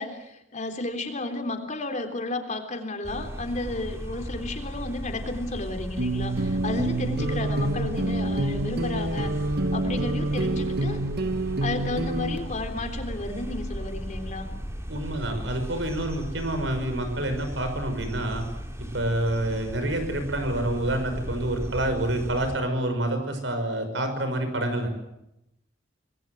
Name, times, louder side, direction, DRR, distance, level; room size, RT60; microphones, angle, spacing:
voice 1, 0.0-9.3 9.7-11.0 11.6-14.5, left 2 dB, 40° left, 5 dB, 3.7 m, -32 dB
sound 1, 3.0-22.6, equal, 15° right, 3.0 m, -36 dB
sound 2, 6.0-12.4, right 2 dB, 60° right, 1.5 m, -27 dB
voice 2, 14.9-18.4 18.9-24.9, right 1 dB, 85° right, 7 dB, 5.8 m, -27 dB
27.5 x 20.5 x 7.9 m, 0.86 s
head